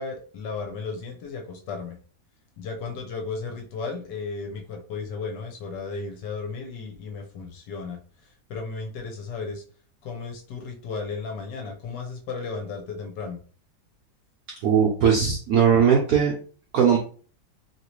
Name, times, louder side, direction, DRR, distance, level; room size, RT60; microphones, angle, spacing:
voice 1, 0.0-2.0 2.6-9.6 10.0-13.4, left 4 dB, 70° left, 3 dB, 1.2 m, -34 dB
voice 2, 14.6-16.3 16.7-17.0, right 7 dB, 75° right, 0 dB, 0.8 m, -19 dB
3.0 x 2.8 x 3.0 m, 0.41 s
omnidirectional pair, 2.2 m